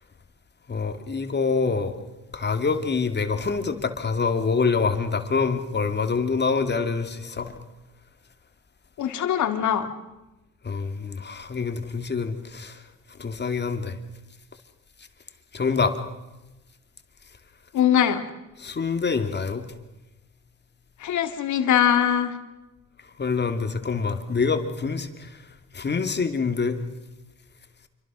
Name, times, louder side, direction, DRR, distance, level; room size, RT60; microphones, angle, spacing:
voice 1, 0.7-2.0 2.3-7.6 10.6-12.8 13.2-14.0 15.5-16.0 18.6-19.7 23.2-25.4 25.7-26.8, left 5 dB, 35° left, 7 dB, 2.6 m, -26 dB
voice 2, 9.0-9.9 17.7-18.2 21.0-22.3, left 9 dB, 75° left, 8 dB, 2.5 m, -22 dB
27.0 x 24.5 x 6.3 m, 1.0 s
cardioid pair, 90°, 30 cm